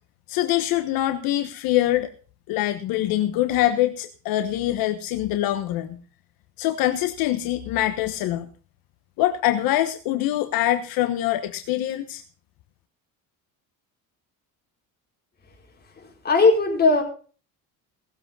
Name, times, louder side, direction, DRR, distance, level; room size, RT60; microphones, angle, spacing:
voice 1, 0.3-2.1 2.5-6.0 6.6-8.5 9.2-12.2, left 13 dB, 75° left, 8 dB, 1.3 m, -24 dB
voice 2, 16.2-17.0, left 3 dB, 25° left, 0 dB, 5.1 m, -17 dB
18.0 x 7.9 x 5.5 m, 0.39 s
cardioid pair, 135°, 35 cm